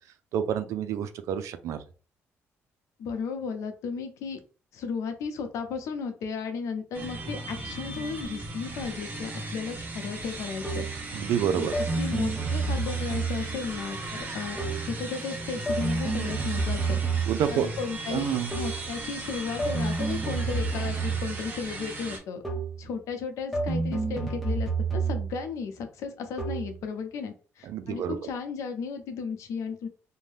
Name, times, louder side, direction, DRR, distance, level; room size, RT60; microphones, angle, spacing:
voice 1, 0.3-1.8 11.1-11.7 17.3-17.7 18.1-18.5 27.6-28.2, right 9 dB, 80° right, 9 dB, 0.4 m, -28 dB
voice 2, 3.0-4.4 4.7-10.9 11.5-17.0 17.5-22.4 22.8-29.9, left 5 dB, 80° left, 7 dB, 0.6 m, -34 dB
sound 1, 6.9-22.2, right 2 dB, 35° right, 1.0 m, -37 dB
sound 2, 10.6-11.1 11.7-13.7 14.6-15.0 15.7-17.6 18.5-18.9 19.6-21.5 22.4-22.9 23.5-25.5 26.4-26.8, right 4 dB, ahead, 0.9 m, -29 dB
2.6 x 2.1 x 3.3 m, 0.37 s
cardioid pair, 95°, 5 cm